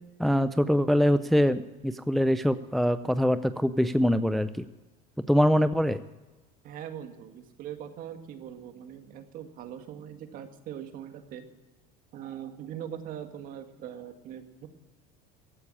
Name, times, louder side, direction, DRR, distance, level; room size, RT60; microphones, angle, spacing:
voice 1, 0.2-4.6 5.3-6.0, equal, ahead, 12 dB, 0.4 m, -24 dB
voice 2, 6.6-11.4 12.1-14.7, right 9 dB, 50° right, 7 dB, 2.0 m, -41 dB
15.5 x 9.8 x 8.5 m, 1.2 s
supercardioid pair, 130°, 18 cm